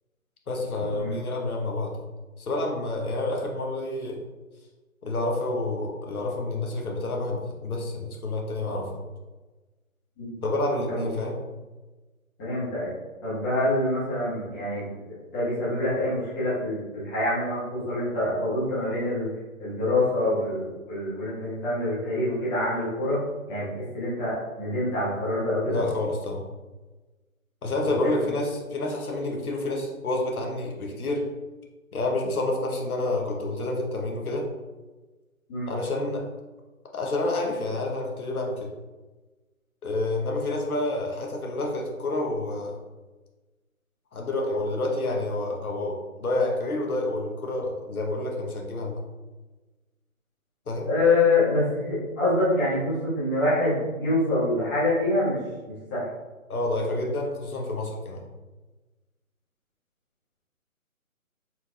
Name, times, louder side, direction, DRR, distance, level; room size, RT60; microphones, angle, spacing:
voice 1, 0.5-2.0 2.4-4.2 5.0-9.0 10.4-11.3 25.7-26.4 27.6-31.3 31.9-34.5 35.7-36.2 36.9-38.7 39.8-42.8 44.1-49.0 50.7-50.9 56.5-58.2, left 2 dB, 85° left, 1 dB, 1.0 m, -28 dB
voice 2, 12.4-12.9 13.2-14.9 15.3-19.3 19.6-23.2 23.5-25.8 27.8-27.9 35.5-35.7 50.9-55.4 55.7-56.0, left 2 dB, 15° left, -11 dB, 1.2 m, -26 dB
4.7 x 4.2 x 2.3 m, 1.2 s
figure-of-eight pair, 155°, 42 cm